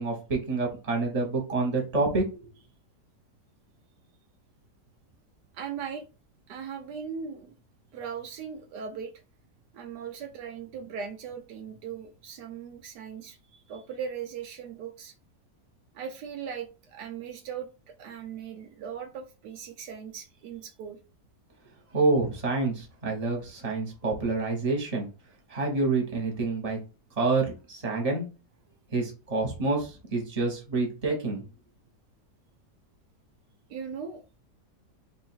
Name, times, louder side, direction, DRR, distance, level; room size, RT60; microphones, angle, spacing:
voice 1, 0.0-2.2 21.9-25.1 25.5-26.8 27.2-28.3 28.9-31.4, right 3 dB, 25° right, 1.2 m, -27 dB
voice 2, 5.5-6.0 6.5-7.5 7.9-9.1 9.7-15.1 15.9-21.0 33.7-34.4, right 7 dB, 75° right, 1.2 m, -39 dB
3.3 x 2.7 x 4.5 m
omnidirectional pair, 1.8 m